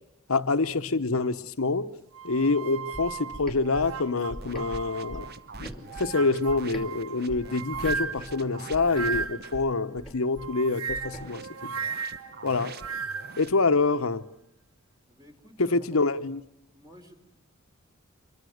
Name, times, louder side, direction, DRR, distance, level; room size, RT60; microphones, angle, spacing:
voice 1, 0.3-1.9 2.2-5.3 5.6-5.7 6.0-11.5 12.4-12.7 13.4-14.2 15.6-16.4, left 3 dB, 80° left, 11 dB, 1.1 m, -26 dB
sound 1, 2.1-5.4 5.9-9.6 10.4-13.4, right 6 dB, 80° right, 0.8 m, -36 dB
sound 2, 2.9-6.9 7.3-11.3, equal, ahead, 2.6 m, -42 dB
sound 3, 4.4-9.6 11.0-13.5, right 4 dB, 50° right, 1.0 m, -46 dB
voice 2, 15.1-16.0 16.7-17.1, left 1 dB, 20° right, 4 dB, 3.7 m, -50 dB
25.5 x 23.0 x 6.6 m, 0.86 s
head